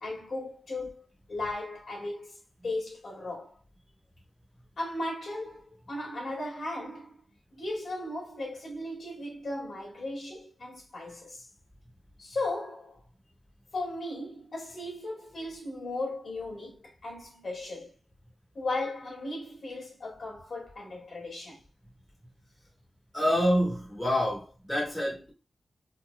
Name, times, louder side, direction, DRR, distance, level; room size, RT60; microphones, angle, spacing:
voice 1, 0.0-2.4 2.6-3.5 4.8-7.2 7.6-11.5 12.2-13.0 13.7-17.9 18.5-21.6, left 2 dB, 60° left, 2.1 m, -36 dB
voice 2, 23.1-25.3, equal, 10° left, 2.4 m, -27 dB
4.5 x 3.5 x 2.2 m
wide cardioid pair, 135°, 0 cm